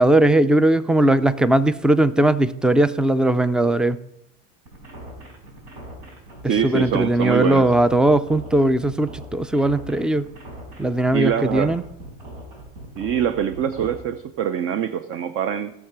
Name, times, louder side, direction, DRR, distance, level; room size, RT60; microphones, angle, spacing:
voice 1, 0.0-4.0 6.4-10.3 10.8-11.8, right 1 dB, 5° right, 16 dB, 0.4 m, -19 dB
sound 1, 4.7-14.0, right 1 dB, 90° right, 4.2 m, -40 dB
voice 2, 6.5-7.7 11.1-11.8 13.0-15.7, right 9 dB, 45° right, 12 dB, 0.7 m, -24 dB
17.0 x 6.7 x 5.9 m, 0.80 s
supercardioid pair, 125°, 31 cm